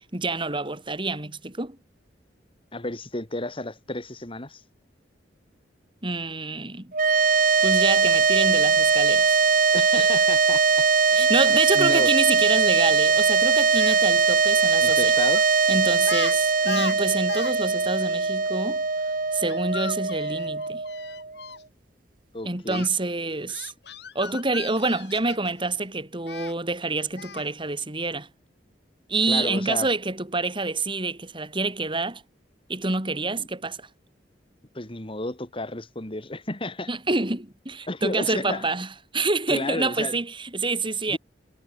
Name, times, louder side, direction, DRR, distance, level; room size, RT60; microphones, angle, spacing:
voice 1, 0.1-1.8 6.0-6.9 7.6-9.4 11.1-15.1 15.7-18.8 19.3-20.8 22.5-23.7 24.2-28.3 29.1-32.2 32.7-33.9 36.9-41.2, right 3 dB, 30° right, 3.6 m, -27 dB
voice 2, 2.7-4.6 9.7-10.9 11.1-12.1 14.8-15.4 22.3-22.9 29.3-29.9 33.4-33.5 34.7-36.9 37.9-38.6 39.5-40.2 41.1-41.2, left 2 dB, 30° left, 2.7 m, -32 dB
sound 1, 6.9-21.4, right 5 dB, 50° right, 3.1 m, -21 dB
Speech, 13.6-14.0 15.3-15.5 16.0-16.3 16.6-17.5 17.8-17.9 19.5-21.6 22.7-22.9 23.5-25.6 26.3-26.5 27.2-27.5, left 5 dB, 65° left, 3.1 m, -37 dB
head